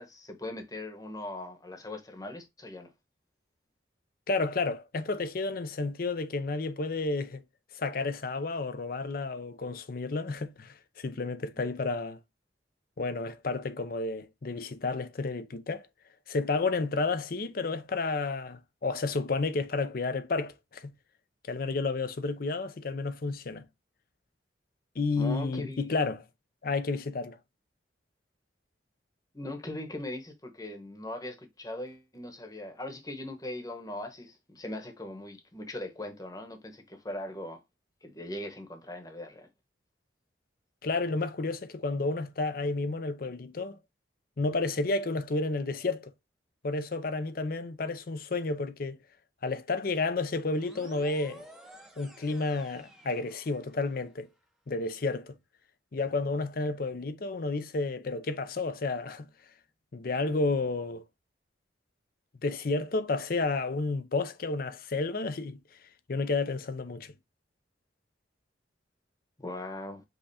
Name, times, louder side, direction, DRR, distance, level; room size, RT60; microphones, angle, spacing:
voice 1, 0.0-2.9 25.1-25.9 29.3-37.6 38.0-39.5 69.4-70.0, left 1 dB, 20° left, 1.1 m, -40 dB
voice 2, 4.3-7.4 7.7-12.2 13.0-15.8 16.3-20.9 21.5-23.6 25.0-26.2 26.6-27.4 40.8-43.8 44.4-46.1 46.6-49.0 49.4-51.5 52.0-54.3 54.7-55.4 55.9-59.3 59.9-61.0 62.4-65.6 66.1-67.1, left 3 dB, 50° left, 0.5 m, -31 dB
sound 1, 50.5-54.0, equal, 5° right, 0.8 m, -51 dB
5.4 x 2.3 x 4.1 m
head